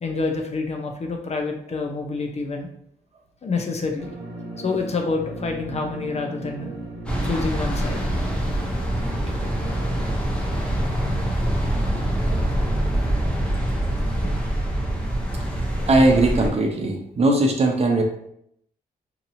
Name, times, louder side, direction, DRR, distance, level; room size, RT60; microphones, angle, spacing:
voice 1, 0.0-2.7 3.4-4.1 4.6-6.7 7.2-8.0 9.8-9.9 14.2-14.4, left 3 dB, 40° left, 3 dB, 0.6 m, -27 dB
sound 1, 4.0-10.1, right 1 dB, 75° right, 0.8 m, -36 dB
sound 2, 7.1-16.5, right 1 dB, 5° left, 1.0 m, -24 dB
voice 2, 15.8-18.0, right 2 dB, 40° right, 2 dB, 0.7 m, -19 dB
2.8 x 2.6 x 2.6 m, 0.72 s
supercardioid pair, 55°, 17 cm